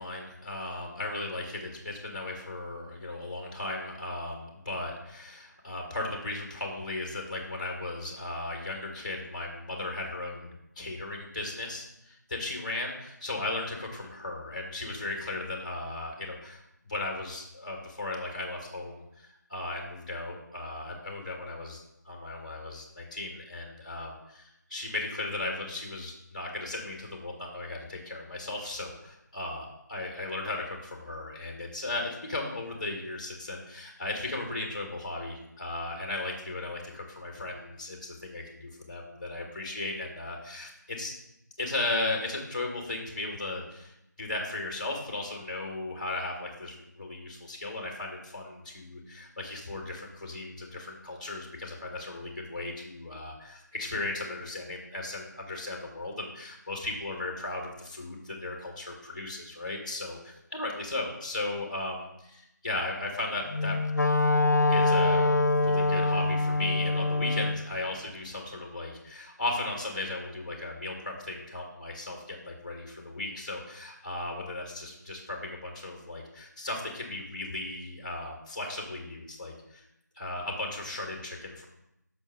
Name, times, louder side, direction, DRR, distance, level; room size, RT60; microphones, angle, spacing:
voice 1, 0.0-41.1 41.6-63.8 64.7-65.3 65.6-79.9 80.2-81.6, left 2 dB, 25° left, 1 dB, 1.5 m, -36 dB
Wind instrument woodwind instrument, 63.5-67.6, left 2 dB, 65° left, 0.5 m, -24 dB
6.1 x 4.5 x 6.2 m, 0.83 s
figure-of-eight pair, 165°, 10 cm